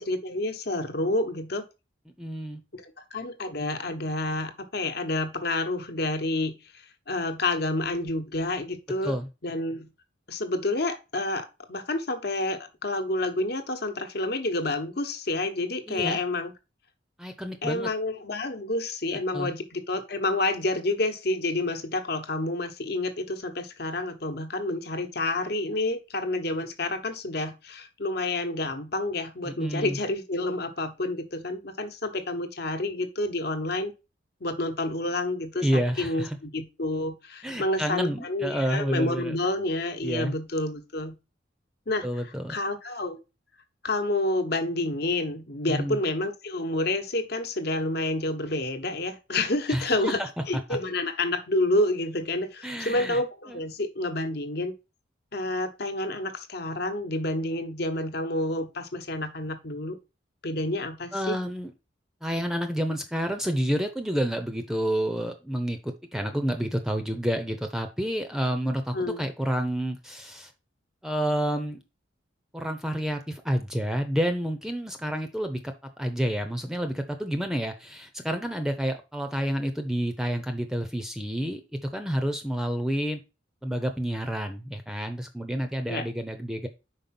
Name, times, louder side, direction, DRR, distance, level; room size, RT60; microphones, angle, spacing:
voice 1, 0.0-1.6 2.7-6.5 7.1-9.1 9.4-9.9 10.3-16.5 17.6-33.9 34.4-41.2 41.9-42.0 42.5-43.2 43.8-50.2 50.5-54.7 55.3-60.0 60.4-61.4 68.9-69.2 85.9-86.0, left 2 dB, 55° left, 8 dB, 1.1 m, -29 dB
voice 2, 2.2-2.6 9.0-9.3 15.9-16.2 17.2-17.9 19.3-19.5 29.4-30.0 35.6-36.4 37.4-39.4 40.0-40.3 42.0-42.5 45.7-46.0 49.7-50.3 50.7-50.8 52.6-53.2 53.5-53.6 61.1-61.7 62.2-70.5 71.0-71.8 72.5-83.2 83.6-86.7, equal, 5° right, 6 dB, 0.7 m, -29 dB
5.3 x 4.7 x 5.8 m, 0.28 s
head